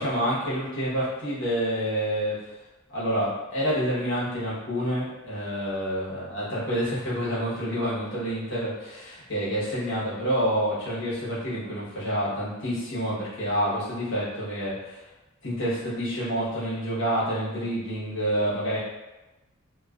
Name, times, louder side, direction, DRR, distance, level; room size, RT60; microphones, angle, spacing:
voice 1, 0.0-2.4 2.9-15.0 15.4-18.8, equal, 60° left, -8 dB, 0.9 m, -28 dB
2.3 x 2.3 x 2.3 m, 1.1 s
head